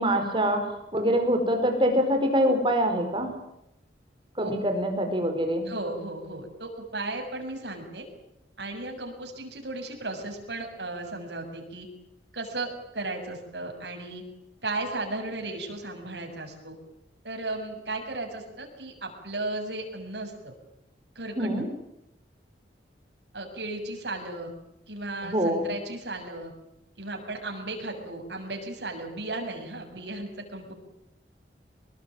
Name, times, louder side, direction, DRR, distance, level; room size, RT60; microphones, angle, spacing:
voice 1, 0.0-3.4 4.4-5.7 21.4-21.7 25.2-25.7, equal, 30° right, 5 dB, 5.1 m, -25 dB
voice 2, 5.7-8.1 8.6-11.9 12.3-14.2 14.6-16.7 17.2-20.5 21.2-21.5 23.3-24.5 24.9-26.5 27.0-30.7, right 2 dB, 70° right, 3 dB, 7.3 m, -35 dB
25.5 x 20.5 x 9.2 m, 0.84 s
head